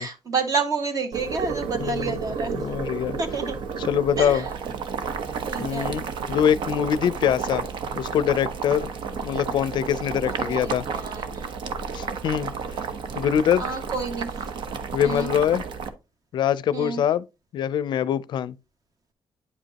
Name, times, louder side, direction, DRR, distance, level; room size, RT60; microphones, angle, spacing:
voice 1, 0.0-2.6 3.2-3.6 4.2-4.5 5.4-5.9 10.3-11.4 13.6-14.3 15.0-15.3 16.7-17.0, right 4 dB, 45° right, 1.7 m, -29 dB
Boiling, 1.1-15.9, right 5 dB, 70° right, 1.0 m, -31 dB
voice 2, 1.8-2.2 2.5-3.2 3.8-4.5 5.6-6.0 6.3-7.7 8.0-8.9 9.2-10.9 11.9-12.8 13.2-13.6 14.9-15.6 16.3-17.3 17.5-18.6, left 9 dB, 65° left, 0.4 m, -24 dB
9.6 x 5.0 x 2.8 m
cardioid pair, 100°, 9 cm